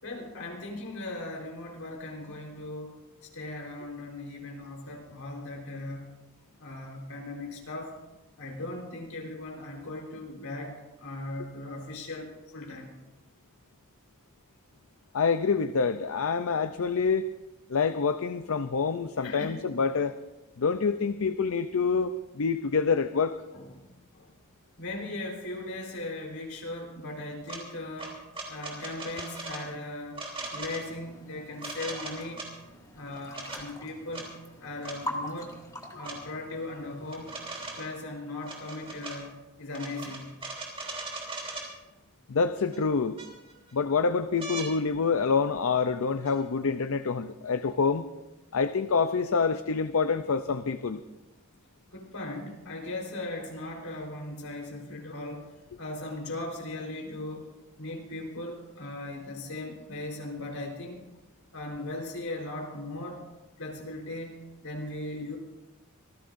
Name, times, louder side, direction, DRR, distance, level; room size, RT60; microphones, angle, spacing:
voice 1, 0.0-6.1 6.6-8.0 8.4-12.9 19.2-19.6 23.5-23.9 24.1-24.3 24.8-28.2 28.5-30.2 30.5-32.4 32.9-34.4 34.6-35.6 35.9-37.3 37.8-40.3 51.9-55.5 55.8-61.0 61.5-63.2 63.6-65.4, left 2 dB, 80° left, 1 dB, 4.0 m, -38 dB
voice 2, 15.1-17.3 17.7-20.2 20.6-23.3 42.3-43.2 43.7-48.0 48.5-51.0, left 5 dB, 65° left, 10 dB, 0.5 m, -26 dB
sound 1, 27.5-27.6 28.0-29.6 30.1-30.8 31.6-32.5 33.1-33.6 34.1-34.3 34.8-35.0 36.0-36.2 37.1-37.9 38.4-39.2 39.7-41.7 42.7-42.8 43.2-43.7 44.4-44.7 46.2-46.4, right 3 dB, 25° right, 3.1 m, -39 dB
sound 2, 30.4-37.8, left 1 dB, 15° left, 1.6 m, -44 dB
26.0 x 15.0 x 2.6 m, 1.0 s
head